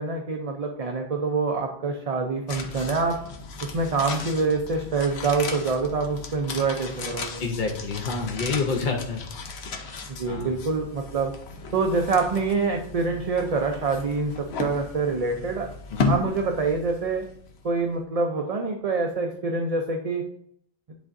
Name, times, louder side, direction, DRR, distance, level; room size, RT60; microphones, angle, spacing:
voice 1, 0.0-3.2 3.6-7.4 10.2-11.3 11.7-15.7 16.1-17.2 17.6-20.2, right 4 dB, 45° right, 2 dB, 0.6 m, -26 dB
sound 1, 2.5-17.7 17.9-18.0, left 4 dB, 80° left, 1.0 m, -35 dB
voice 2, 7.4-9.2 10.3-10.5 15.9-16.1, left 4 dB, 50° left, 0 dB, 0.8 m, -28 dB
10.5 x 3.6 x 2.6 m, 0.67 s
omnidirectional pair, 1.1 m